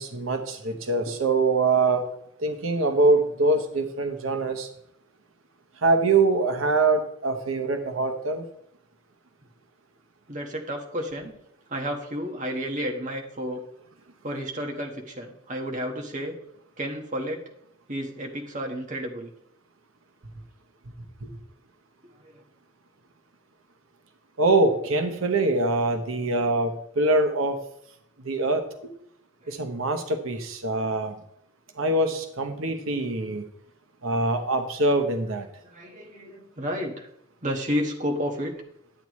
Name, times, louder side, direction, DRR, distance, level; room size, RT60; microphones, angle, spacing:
voice 1, 0.0-2.1 2.4-4.7 5.8-8.4 21.2-21.3 24.4-27.6 28.2-28.9 29.5-31.2 31.8-33.4 34.0-35.5, right 3 dB, 90° right, 6 dB, 1.0 m, -24 dB
voice 2, 10.3-11.3 11.7-13.6 14.2-16.3 16.8-17.4 17.9-19.3 29.5-29.6 35.6-37.1 37.4-38.5, equal, 40° right, 2 dB, 1.5 m, -31 dB
11.5 x 8.3 x 3.1 m, 0.72 s
head